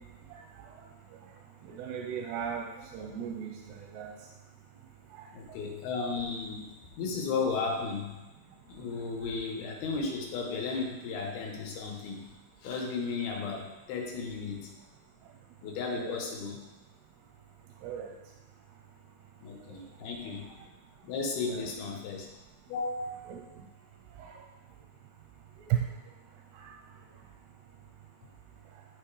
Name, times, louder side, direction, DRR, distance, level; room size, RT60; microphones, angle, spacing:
voice 1, 1.8-2.7 2.9-3.5 3.9-4.1 15.9-16.2 17.8-18.1 21.5-21.7 23.3-23.4 25.7-25.8 26.6-26.7, right 10 dB, 85° right, 0 dB, 2.7 m, -34 dB
voice 2, 5.3-6.7 7.0-8.2 8.7-12.2 12.6-14.7 15.6-16.6 19.4-20.5 21.0-22.3 22.7-23.4, left 4 dB, 75° left, 0 dB, 2.7 m, -34 dB
11.5 x 4.1 x 3.3 m, 1.1 s
omnidirectional pair, 4.7 m